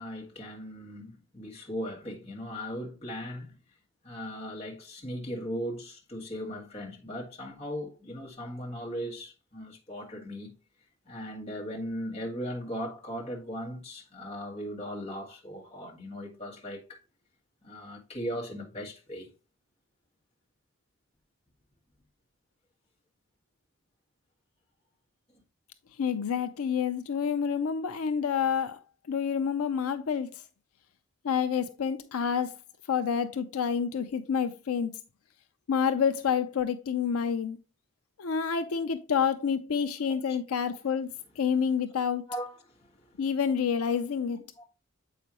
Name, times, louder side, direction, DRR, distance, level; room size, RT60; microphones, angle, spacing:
voice 1, 0.0-3.6 4.0-10.5 11.0-17.0 17.6-19.3 40.3-40.4 42.3-43.2 44.6-44.7, equal, 25° left, 1.6 m, -38 dB
voice 2, 26.0-28.8 29.1-30.3 31.2-32.6 32.9-35.0 35.7-37.6 38.2-41.1 41.4-42.2 43.2-44.4, left 7 dB, 80° left, 0.5 m, -28 dB
7.5 x 4.9 x 2.8 m
head